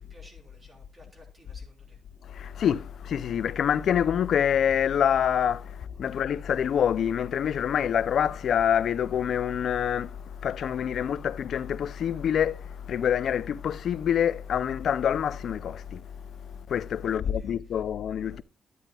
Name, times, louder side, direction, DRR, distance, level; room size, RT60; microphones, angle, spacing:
voice 1, 0.1-2.0 17.0-17.9 18.2-18.4, left 1 dB, 20° right, 3.5 m, -56 dB
voice 2, 2.3-16.0 16.4-18.4, left 9 dB, 60° left, 0.4 m, -26 dB
12.0 x 9.8 x 2.3 m
cardioid pair, 150°, 0 cm